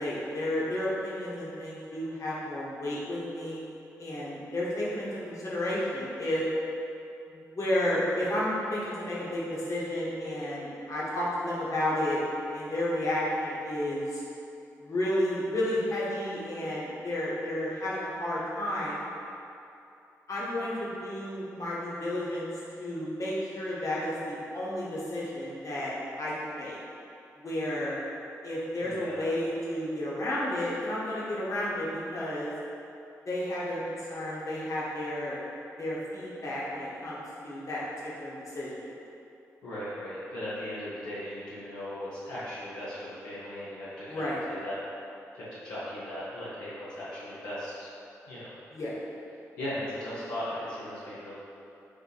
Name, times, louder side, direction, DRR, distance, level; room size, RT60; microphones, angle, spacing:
voice 1, 0.0-3.6 4.0-6.4 7.3-12.2 12.5-14.2 14.8-19.0 20.3-22.5 22.8-26.8 27.3-28.0 28.4-32.5 33.2-35.4 35.8-37.8 38.2-38.9 44.1-44.4 48.7-49.0, left 1 dB, 50° left, -7 dB, 1.4 m, -32 dB
voice 2, 28.8-29.3 39.6-44.7 45.3-47.9 48.3-48.5 49.6-51.3, left 1 dB, 80° left, -11 dB, 0.9 m, -38 dB
4.8 x 2.7 x 4.0 m, 2.7 s
supercardioid pair, 45°, 7 cm